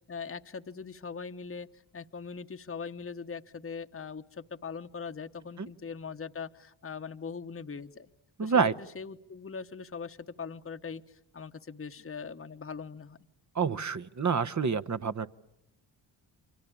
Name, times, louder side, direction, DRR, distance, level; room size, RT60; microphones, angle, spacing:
voice 1, 0.0-8.1 8.4-13.2, left 5 dB, 30° left, 8 dB, 1.1 m, -41 dB
voice 2, 8.4-8.7 13.5-15.3, right 5 dB, 35° right, 14 dB, 1.1 m, -27 dB
28.5 x 24.5 x 8.5 m, 0.81 s
supercardioid pair, 40°, 48 cm